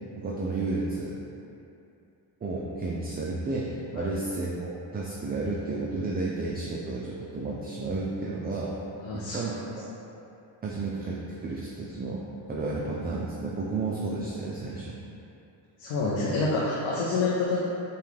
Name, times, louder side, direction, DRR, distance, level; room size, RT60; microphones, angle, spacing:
voice 1, 0.2-1.2 2.4-8.7 9.1-9.9 10.6-12.2 12.5-15.0, right 3 dB, 25° right, -4 dB, 0.3 m, -32 dB
voice 2, 9.0-9.4 15.8-17.6, left 3 dB, 90° left, -6 dB, 0.7 m, -27 dB
5.4 x 2.2 x 3.3 m, 2.7 s
cardioid pair, 105°, 44 cm